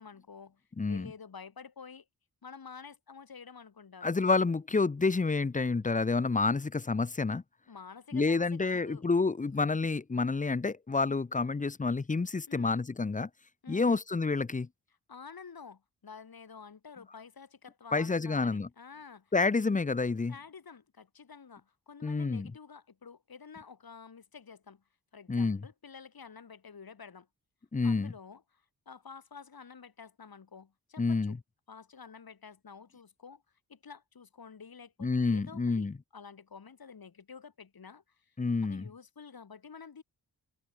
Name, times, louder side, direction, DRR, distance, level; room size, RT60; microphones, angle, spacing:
voice 1, 0.0-2.1 2.4-4.1 7.7-9.0 12.5-12.8 13.6-14.0 14.9-19.4 20.3-24.8 25.1-27.3 27.8-31.4 31.7-40.0, left 6 dB, 60° left, 3.7 m, -50 dB
voice 2, 0.8-1.1 4.0-7.4 8.1-13.3 13.7-14.7 17.9-18.7 19.3-20.3 22.0-22.5 25.3-25.6 27.7-28.1 31.0-31.4 35.0-35.9 38.4-38.9, left 4 dB, 20° left, 0.6 m, -29 dB
open air
cardioid pair, 60°, 40 cm